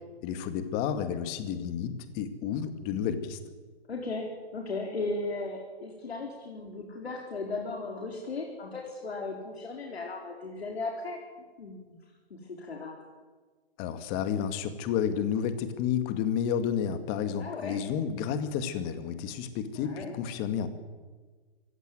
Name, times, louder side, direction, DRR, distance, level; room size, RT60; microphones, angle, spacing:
voice 1, 0.2-3.4 13.8-20.7, left 8 dB, 30° left, 10 dB, 2.1 m, -31 dB
voice 2, 3.9-11.2 11.6-12.0 12.3-12.9 17.4-17.8 19.8-20.1, left 3 dB, 75° left, 0 dB, 4.5 m, -36 dB
24.0 x 15.5 x 9.3 m, 1.4 s
hypercardioid pair, 135°, 31 cm